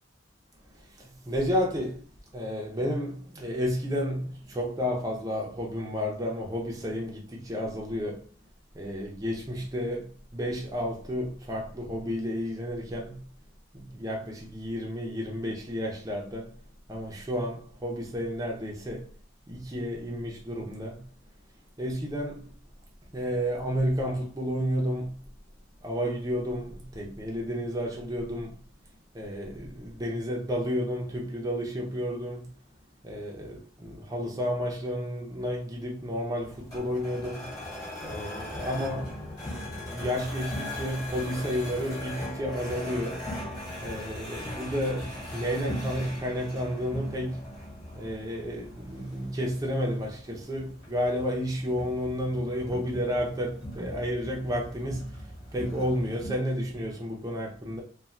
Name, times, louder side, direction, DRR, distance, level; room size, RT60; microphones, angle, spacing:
voice 1, 1.0-2.0 2.3-8.2 8.7-13.2 13.7-16.5 16.9-19.1 19.5-21.0 21.8-22.4 23.1-25.2 25.8-28.6 29.1-32.5 33.0-37.6 38.0-39.1 39.8-43.3 43.8-47.4 47.9-55.1 55.5-57.8, equal, 20° right, 0.6 m, -31 dB
sound 1, 36.4-56.3, left 1 dB, 20° left, 1.1 m, -40 dB
2.4 x 2.2 x 3.1 m
head